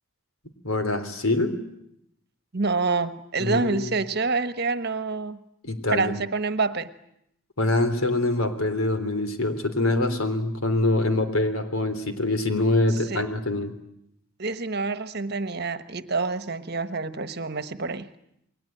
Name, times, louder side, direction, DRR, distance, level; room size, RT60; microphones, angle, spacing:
voice 1, 0.6-1.6 3.4-4.0 5.6-6.1 7.6-13.7, left 2 dB, 85° left, 9 dB, 3.5 m, -24 dB
voice 2, 2.5-5.4 5.9-6.9 13.1-13.2 14.4-18.1, right 4 dB, 50° right, 11 dB, 1.3 m, -27 dB
29.0 x 22.0 x 9.1 m, 0.76 s
head